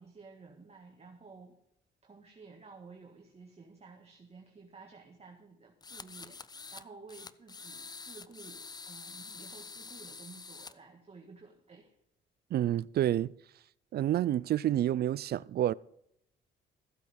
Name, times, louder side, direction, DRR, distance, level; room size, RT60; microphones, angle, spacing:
voice 1, 0.0-1.6 2.0-6.4 6.7-12.0, right 4 dB, 30° right, 1.7 m, -53 dB
sound 1, 5.8-6.8 7.1-10.7, left 4 dB, 20° left, 0.5 m, -47 dB
voice 2, 12.5-13.3 13.9-15.7, right 12 dB, 55° right, 0.4 m, -28 dB
15.0 x 7.9 x 5.3 m
cardioid pair, 90°, 20 cm